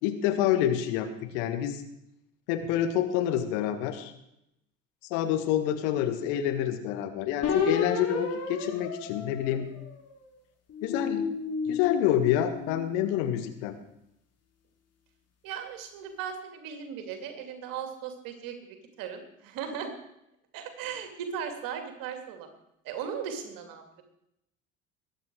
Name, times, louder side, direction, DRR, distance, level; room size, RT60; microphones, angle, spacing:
voice 1, 0.0-1.8 2.5-4.1 5.1-9.7 10.8-11.3 11.7-13.7, left 10 dB, 60° left, 8 dB, 1.8 m, -27 dB
sound 1, 7.4-10.1 10.7-13.2, left 5 dB, 40° left, 3.6 m, -32 dB
voice 2, 15.4-19.9 20.5-22.5 22.8-24.0, right 7 dB, 55° right, 6 dB, 2.9 m, -37 dB
21.5 x 9.0 x 4.8 m, 0.81 s
figure-of-eight pair, 60°, 40 cm